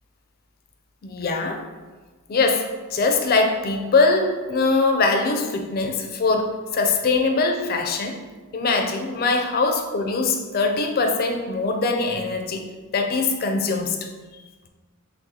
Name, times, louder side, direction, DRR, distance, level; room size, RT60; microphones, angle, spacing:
voice 1, 1.0-1.7 2.3-8.2 8.5-12.7 12.9-14.1, left 3 dB, 45° left, 4 dB, 0.4 m, -22 dB
6.1 x 2.1 x 2.7 m, 1.3 s
head